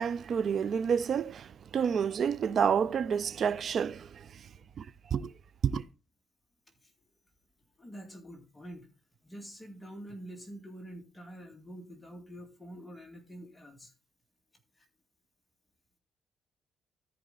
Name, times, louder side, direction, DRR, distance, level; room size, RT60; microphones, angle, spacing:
voice 1, 0.0-4.3 4.8-4.9 5.1-5.3 5.6-5.8, right 7 dB, 55° right, 0.5 m, -29 dB
voice 2, 7.8-8.9 9.2-13.9 14.8-14.9, equal, 15° left, 2.2 m, -46 dB
14.0 x 5.1 x 3.9 m
cardioid pair, 90°, 0 cm